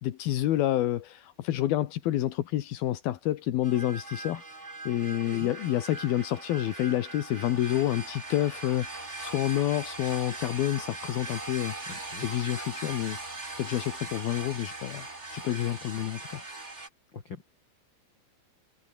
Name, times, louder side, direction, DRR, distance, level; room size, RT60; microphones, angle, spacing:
voice 1, 0.0-13.2 13.6-16.4, left 13 dB, 65° left, 2.7 m, -29 dB
sound 1, 3.6-16.9, right 2 dB, 15° right, 3.4 m, -40 dB
voice 2, 11.9-12.3 17.1-17.5, left 6 dB, 50° left, 1.4 m, -43 dB
omnidirectional pair, 5.6 m